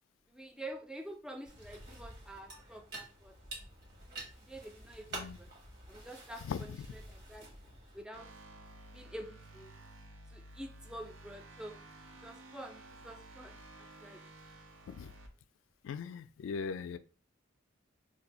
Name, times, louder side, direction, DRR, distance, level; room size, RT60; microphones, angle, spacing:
voice 1, 0.3-3.4 4.1-5.5 5.9-7.5 7.9-8.3 8.9-9.7 10.3-11.8 12.2-13.6 14.0-14.3, right 1 dB, 5° right, 0.3 m, -48 dB
sound 1, 1.5-8.0, right 2 dB, 60° right, 1.3 m, -49 dB
sound 2, 8.1-15.3, right 2 dB, 80° right, 0.6 m, -53 dB
voice 2, 15.8-17.0, left 6 dB, 80° left, 0.3 m, -39 dB
2.6 x 2.4 x 3.9 m
head